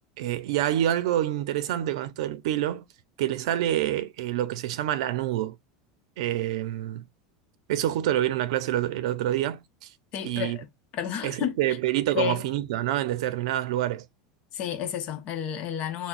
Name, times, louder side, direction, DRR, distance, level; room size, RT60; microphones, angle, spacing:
voice 1, 0.2-2.9 3.2-5.6 6.2-7.1 7.7-9.9 10.2-10.6 11.2-14.1, right 12 dB, 75° right, 0.6 m, -27 dB
voice 2, 10.1-11.8 12.1-12.5 14.5-16.1, left 9 dB, 40° left, 0.9 m, -31 dB
5.9 x 2.2 x 2.5 m
supercardioid pair, 150°, 3 cm